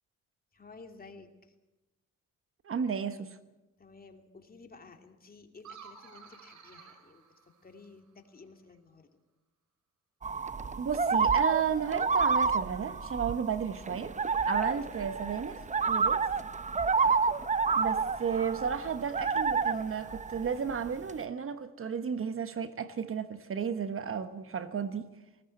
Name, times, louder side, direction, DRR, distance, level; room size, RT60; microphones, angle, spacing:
voice 1, 0.5-1.5 3.8-7.3 7.6-9.1 14.5-14.6, left 4 dB, 30° left, 2.8 m, -53 dB
voice 2, 2.6-3.4 10.8-14.2 14.5-16.3 17.7-25.1, right 7 dB, 45° right, 1.2 m, -33 dB
sound 1, 5.6-8.1, right 6 dB, 70° right, 3.7 m, -52 dB
sound 2, 10.2-21.1, right 5 dB, 25° right, 0.8 m, -29 dB
19.5 x 18.5 x 7.8 m
cardioid pair, 90°, 30 cm